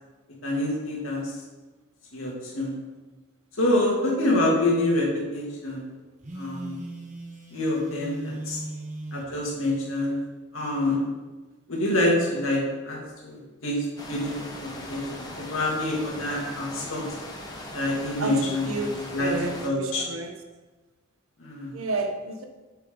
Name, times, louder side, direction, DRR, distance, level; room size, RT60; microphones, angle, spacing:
voice 1, 0.4-1.3 2.1-2.8 3.6-5.9 6.3-6.8 7.5-8.6 9.1-10.2 10.5-11.0 11.7-13.0 13.2-13.8 14.1-17.0 17.7-18.7 19.1-19.3 19.6-20.1 21.4-21.7, left 1 dB, 70° left, -3 dB, 2.6 m, -26 dB
Telephone, 6.2-9.3, right 1 dB, 35° right, 1.0 m, -38 dB
sound 1, 14.0-19.7, left 1 dB, 15° left, 1.0 m, -39 dB
voice 2, 18.2-20.3 21.7-22.4, right 2 dB, 80° right, 5 dB, 1.1 m, -31 dB
9.2 x 7.2 x 3.9 m, 1.2 s
head